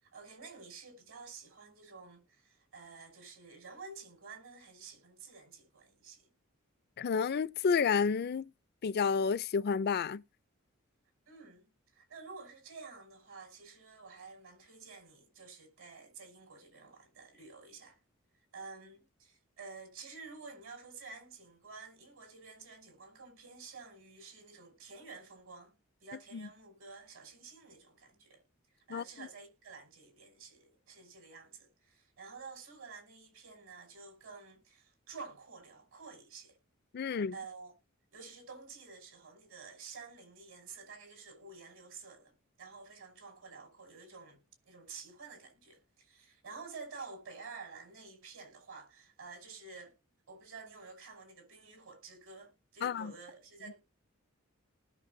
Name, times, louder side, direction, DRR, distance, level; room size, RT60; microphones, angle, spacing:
voice 1, 0.0-6.3 11.3-11.7 11.9-18.0 18.5-28.4 28.9-36.6 37.0-37.7 38.1-42.3 42.6-44.4 44.6-49.9 50.3-53.8, right 4 dB, 75° right, 5.9 m, -50 dB
voice 2, 7.0-8.5 8.8-10.2 26.3-26.5 28.9-29.3 36.9-37.3 52.8-53.1, left 6 dB, 50° left, 0.4 m, -30 dB
19.0 x 6.5 x 2.7 m
head